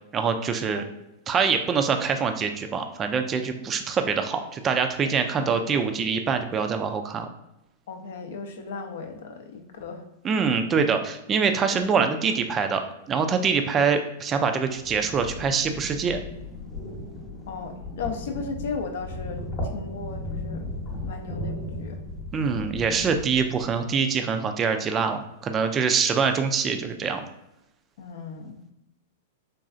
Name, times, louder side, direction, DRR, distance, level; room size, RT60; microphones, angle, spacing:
voice 1, 0.1-0.8 1.3-7.3 10.2-12.8 13.1-16.2 22.3-27.2, right 5 dB, 25° right, 6 dB, 0.3 m, -24 dB
voice 2, 5.4-5.8 7.9-10.0 17.5-19.4 19.7-20.6 21.0-22.0 28.0-28.6, left 4 dB, 65° left, 5 dB, 0.5 m, -36 dB
sound 1, 14.7-23.9, left 1 dB, 40° left, 0.8 m, -36 dB
3.9 x 2.3 x 2.5 m, 0.88 s
hypercardioid pair, 100°, 0 cm